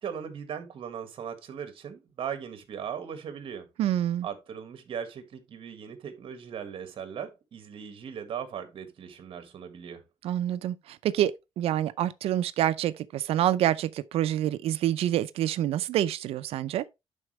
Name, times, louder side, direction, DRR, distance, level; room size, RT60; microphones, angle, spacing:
voice 1, 0.0-3.7 4.2-10.0, right 8 dB, 65° right, 1.7 m, -38 dB
voice 2, 3.8-4.3 10.2-16.8, right 12 dB, 90° right, 0.5 m, -27 dB
11.0 x 4.3 x 3.1 m
cardioid pair, 110°, 10 cm